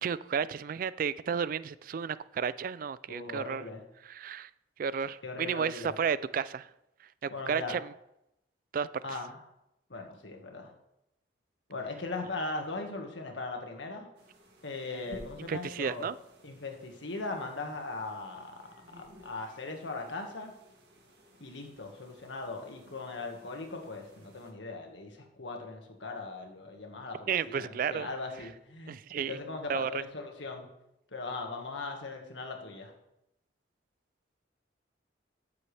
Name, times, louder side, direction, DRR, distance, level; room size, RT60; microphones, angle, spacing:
voice 1, 0.0-3.6 4.1-4.5 4.8-6.7 7.2-7.8 8.7-9.2 15.5-16.2 27.3-28.1 28.9-29.4 29.7-30.0, right 7 dB, 50° right, 0.3 m, -32 dB
voice 2, 3.1-3.8 5.2-5.9 7.3-7.7 9.0-9.4 9.9-10.7 11.7-14.1 14.6-16.1 16.4-18.6 18.9-20.5 21.4-30.7 31.1-32.9, left 3 dB, 85° left, 1.7 m, -39 dB
sound 1, 14.1-24.5, equal, 65° right, 1.9 m, -56 dB
13.5 x 7.0 x 3.4 m
head